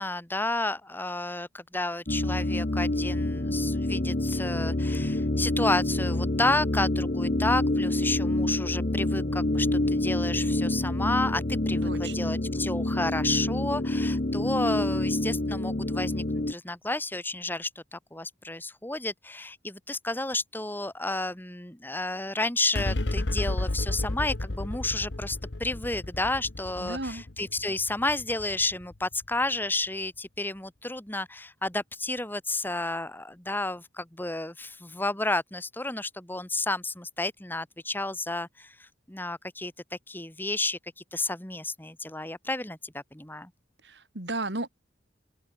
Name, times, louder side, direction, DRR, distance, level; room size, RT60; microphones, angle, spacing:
voice 1, 0.0-40.8 41.1-43.5, left 2 dB, 10° left, 2.1 m, -31 dB
sound 1, 2.1-16.5, left 1 dB, 45° left, 1.1 m, -27 dB
voice 2, 11.8-12.4 26.8-27.2 43.8-44.7, right 2 dB, 65° right, 3.7 m, -34 dB
sound 2, 22.7-29.4, left 2 dB, 65° left, 1.3 m, -32 dB
open air
head